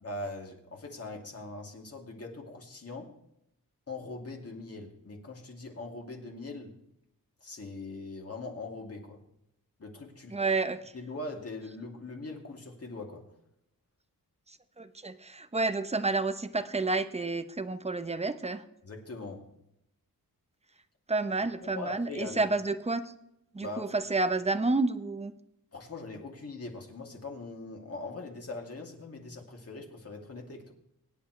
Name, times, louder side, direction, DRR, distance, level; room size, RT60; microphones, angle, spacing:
voice 1, 0.0-3.1 3.9-6.8 7.4-9.2 9.8-10.4 10.9-13.3 18.8-19.5 21.7-22.4 23.6-24.0 25.7-30.7, left 2 dB, 40° left, 1 dB, 2.8 m, -41 dB
voice 2, 10.3-10.9 14.5-18.6 21.1-23.1 23.5-25.3, right 3 dB, 15° right, 11 dB, 0.9 m, -30 dB
23.0 x 10.5 x 3.3 m, 0.80 s
wide cardioid pair, 105°, 37 cm